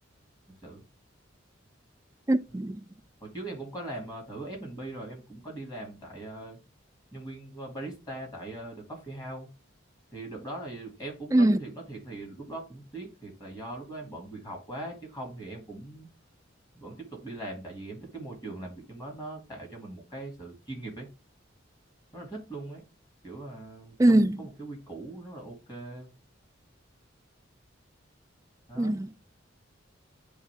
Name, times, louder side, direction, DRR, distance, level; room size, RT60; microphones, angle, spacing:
voice 1, 2.3-2.8 11.3-11.6 24.0-24.4 28.8-29.1, right 1 dB, 15° right, 0.3 m, -22 dB
voice 2, 3.2-6.6 7.1-9.5 10.1-16.1 16.7-21.1 22.1-22.8 23.2-26.1 28.7-29.0, right 2 dB, 20° left, 2.6 m, -40 dB
9.8 x 3.3 x 3.5 m
head